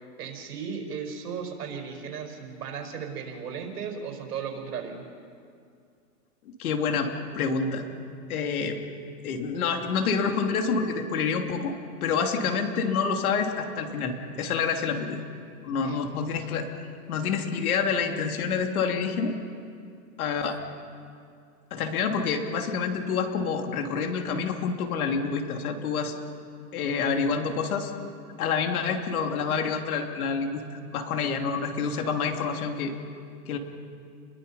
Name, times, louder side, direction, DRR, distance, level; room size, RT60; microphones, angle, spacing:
voice 1, 0.2-5.0 15.8-16.0, right 6 dB, 75° right, 4 dB, 5.0 m, -36 dB
voice 2, 6.6-7.8 8.3-8.8 9.2-15.2 15.6-16.7 17.1-19.3 20.2-20.6 21.7-26.1 26.7-27.9 28.4-32.9 33.5-33.6, left 5 dB, 65° left, 4 dB, 3.1 m, -27 dB
30.0 x 22.0 x 5.6 m, 2.4 s
hypercardioid pair, 155°, 48 cm